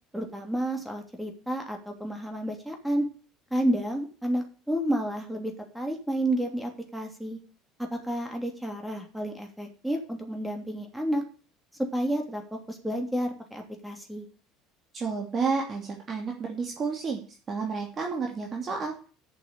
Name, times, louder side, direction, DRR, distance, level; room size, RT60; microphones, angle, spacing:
voice 1, 0.1-3.1 3.5-7.4 7.8-11.2 11.9-14.2, right 1 dB, 5° right, 3 dB, 3.0 m, -30 dB
voice 2, 14.9-17.2 17.5-18.9, right 5 dB, 35° right, 0 dB, 2.9 m, -30 dB
7.9 x 7.4 x 8.5 m, 0.39 s
hypercardioid pair, 65°, 0 cm